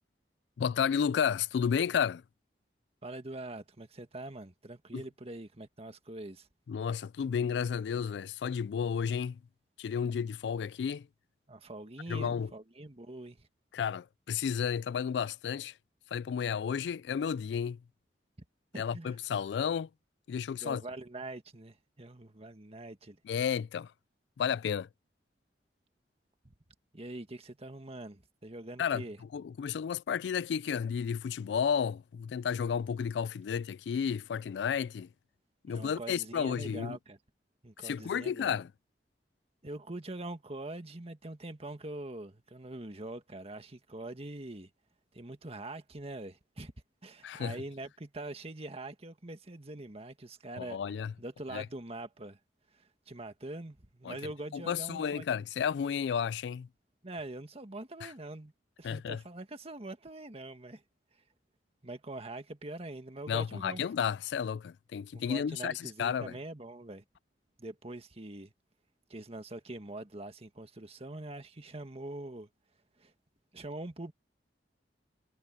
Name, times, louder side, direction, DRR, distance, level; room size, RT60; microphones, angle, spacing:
voice 1, 0.6-2.2 4.9-5.0 6.7-9.4 9.8-11.1 12.1-12.5 13.7-15.7 16.1-17.8 18.8-19.9 20.3-20.8 23.3-23.9 24.4-24.9 28.8-29.0 29.3-35.1 35.6-37.0 37.8-38.7 47.2-47.6 50.5-51.1 51.5-51.7 54.0-54.2 54.5-56.7 58.0-58.1 58.8-59.2 63.3-66.3, left 7 dB, 70° left, 0.3 m, -32 dB
voice 2, 3.0-6.5 11.5-13.5 18.7-19.2 20.5-23.2 26.4-26.5 26.9-29.2 35.7-37.2 37.6-38.6 39.6-44.7 45.1-46.7 47.0-50.8 51.2-52.4 52.7-55.3 57.0-58.5 58.8-60.8 61.8-63.8 65.1-67.0 67.6-68.5 69.1-72.5 73.0-73.1 73.5-74.1, right 2 dB, 35° right, 1.7 m, -43 dB
head